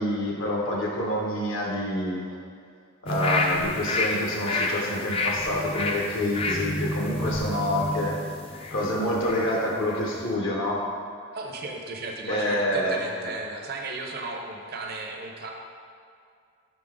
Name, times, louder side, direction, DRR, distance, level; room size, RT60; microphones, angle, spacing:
voice 1, 0.0-2.4 3.0-8.2 8.7-10.8 12.3-13.3, left 1 dB, 65° left, -2 dB, 0.8 m, -27 dB
sound 1, 3.1-9.5 9.9-10.0, left 2 dB, 30° left, 0.4 m, -29 dB
voice 2, 11.3-15.5, right 3 dB, 50° right, 1 dB, 0.7 m, -35 dB
5.6 x 5.1 x 3.6 m, 2.3 s
head